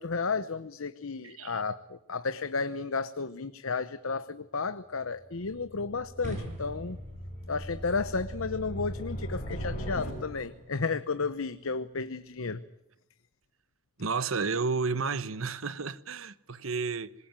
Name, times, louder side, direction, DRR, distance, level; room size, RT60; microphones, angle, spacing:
voice 1, 0.0-7.0 7.5-12.6, left 4 dB, 80° left, 0.9 m, -33 dB
voice 2, 1.2-1.6 14.0-17.1, right 4 dB, 75° right, 1.1 m, -31 dB
sound 1, 5.4-10.7, equal, 40° left, 5.4 m, -39 dB
sound 2, 6.2-12.4, equal, 35° right, 6.4 m, -47 dB
25.5 x 21.0 x 9.0 m
head